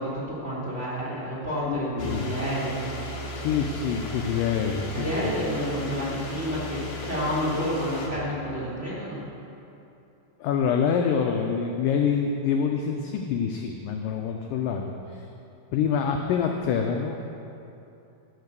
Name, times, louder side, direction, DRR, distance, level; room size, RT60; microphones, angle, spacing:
voice 1, 0.0-2.8 4.9-9.2, equal, 20° right, -9 dB, 3.0 m, -29 dB
voice 2, 1.7-2.4 3.3-5.1 10.4-15.3 15.7-17.3, left 6 dB, 80° left, 3 dB, 1.9 m, -26 dB
sound 1, 2.0-8.1, left 2 dB, 60° left, 1.6 m, -35 dB
15.5 x 5.8 x 6.7 m, 2.8 s
omnidirectional pair, 4.5 m